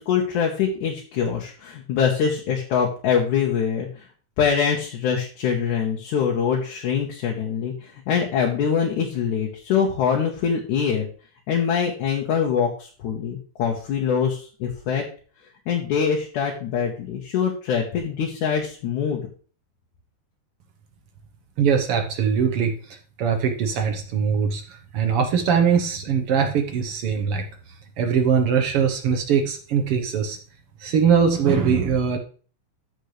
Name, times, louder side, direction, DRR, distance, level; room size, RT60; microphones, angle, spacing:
voice 1, 0.0-4.1 4.4-11.1 11.5-15.0 15.7-19.2, left 7 dB, 75° left, -1 dB, 2.7 m, -24 dB
voice 2, 21.6-27.4 28.0-30.4 30.8-32.2, right 6 dB, 65° right, 4 dB, 1.5 m, -21 dB
13.5 x 5.4 x 3.3 m, 0.40 s
omnidirectional pair, 3.6 m